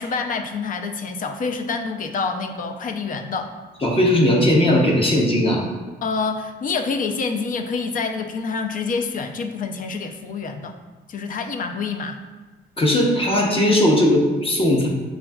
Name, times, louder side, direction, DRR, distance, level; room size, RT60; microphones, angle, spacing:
voice 1, 0.0-3.5 6.0-10.8 11.1-12.2, left 4 dB, 45° left, 6 dB, 0.4 m, -27 dB
voice 2, 3.8-5.7 12.8-14.9, left 1 dB, 30° left, -2 dB, 0.8 m, -18 dB
6.1 x 2.3 x 2.3 m, 1.2 s
cardioid pair, 90°, 20 cm